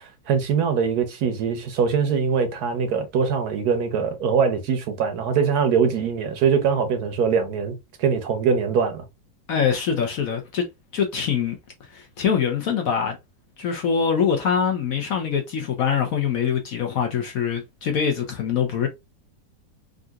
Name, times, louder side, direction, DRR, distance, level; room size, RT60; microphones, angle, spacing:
voice 1, 0.0-9.1, right 6 dB, 70° right, 1.1 m, -22 dB
voice 2, 9.5-10.6 10.9-11.6 11.9-13.2 13.6-18.9, left 7 dB, 65° left, 0.9 m, -24 dB
3.7 x 2.6 x 2.3 m
omnidirectional pair, 1.9 m